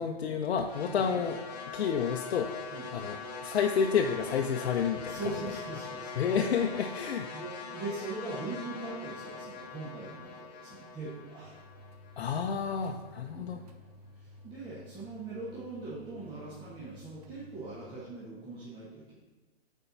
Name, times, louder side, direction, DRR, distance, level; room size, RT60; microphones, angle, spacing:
voice 1, 0.0-1.4 1.7-5.3 6.2-7.3 12.2-13.6, left 6 dB, 75° left, 3 dB, 0.6 m, -30 dB
sound 1, 0.7-12.9, left 4 dB, 40° left, 1.1 m, -42 dB
voice 2, 5.0-6.2 7.3-11.6 13.3-13.6 14.1-19.2, right 3 dB, 15° right, -8 dB, 1.3 m, -41 dB
sound 2, 11.4-18.0, left 2 dB, 40° right, 0.7 m, -53 dB
6.7 x 4.5 x 5.6 m, 1.2 s
hypercardioid pair, 150°, 31 cm